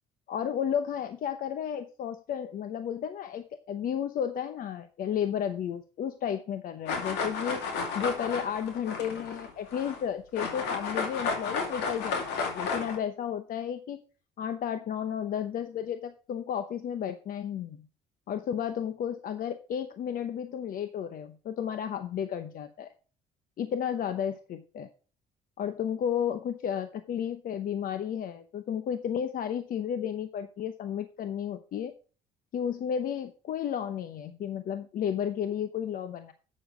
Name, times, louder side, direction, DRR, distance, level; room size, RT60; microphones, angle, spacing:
voice 1, 0.3-7.6 7.9-14.0 14.4-17.9 18.3-22.9 23.6-24.9 25.6-31.9 32.5-36.3, left 8 dB, 55° left, 10 dB, 0.9 m, -33 dB
sound 1, 6.9-10.0 10.4-13.0, left 4 dB, 85° left, 2.5 m, -33 dB
8.6 x 7.0 x 5.0 m, 0.37 s
cardioid pair, 110°, 17 cm